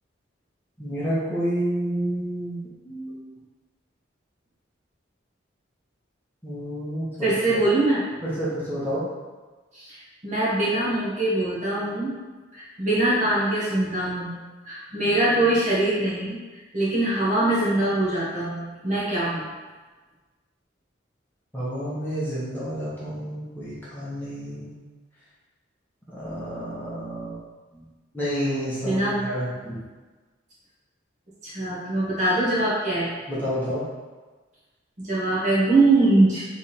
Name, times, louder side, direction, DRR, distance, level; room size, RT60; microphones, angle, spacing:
voice 1, 0.8-2.6 2.8-3.2 6.4-7.3 8.2-9.0 21.5-24.8 26.2-27.4 27.7-27.8 28.1-29.7 33.3-33.8, equal, 10° left, -10 dB, 1.1 m, -29 dB
voice 2, 7.2-8.0 9.7-12.1 12.5-14.4 14.6-16.4 16.7-19.5 28.8-29.3 31.4-33.1 35.0-36.5, right 2 dB, 40° right, -8 dB, 1.3 m, -23 dB
3.5 x 3.3 x 4.3 m, 1.3 s
head